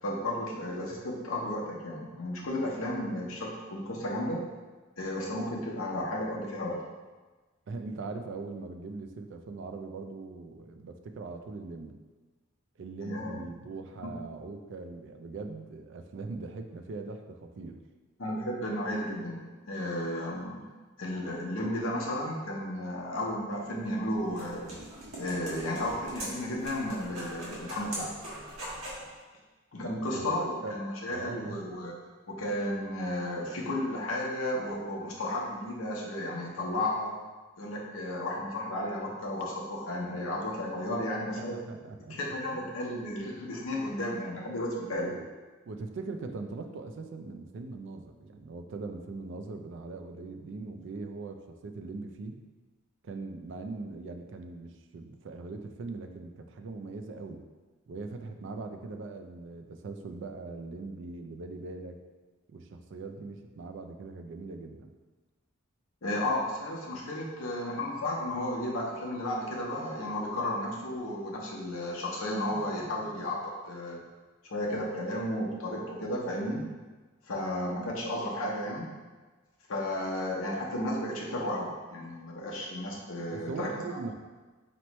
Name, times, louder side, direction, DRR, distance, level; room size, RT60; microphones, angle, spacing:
voice 1, 0.0-4.4 5.0-6.8 13.0-13.4 18.2-20.6 21.0-24.7 25.2-28.1 29.7-31.9 32.3-37.1 37.6-41.6 42.1-45.1 66.0-74.0 74.4-76.6 77.3-78.9 79.7-84.0, left 1 dB, 75° left, -3 dB, 0.8 m, -33 dB
voice 2, 7.7-12.0 12.8-17.8 30.1-30.8 31.1-31.7 41.5-42.2 42.5-42.7 45.0-45.3 45.7-52.4 53.0-57.4 57.9-62.0 62.5-64.9 83.3-84.1, right 3 dB, 60° right, 5 dB, 0.3 m, -41 dB
sound 1, 23.8-29.1, right 1 dB, 75° right, 1.2 m, -41 dB
4.3 x 3.0 x 3.0 m, 1.3 s
head